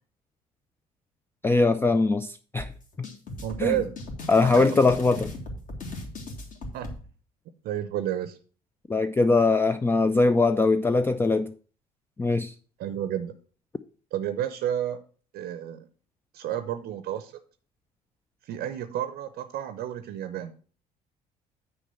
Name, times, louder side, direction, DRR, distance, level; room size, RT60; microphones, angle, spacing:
voice 1, 1.4-2.7 3.0-3.1 3.6-3.7 4.3-5.3 8.9-11.5 12.2-12.5, left 3 dB, 10° left, 0.4 m, -21 dB
sound 1, 2.6-7.0, left 2 dB, 40° left, 1.9 m, -38 dB
voice 2, 3.4-4.0 4.6-4.8 6.7-6.9 7.6-8.4 12.8-13.3 14.1-15.0 15.3-15.9 16.3-17.3 18.5-20.5, right 10 dB, 50° right, 0.7 m, -31 dB
9.0 x 4.8 x 5.6 m
figure-of-eight pair, 50°, 20 cm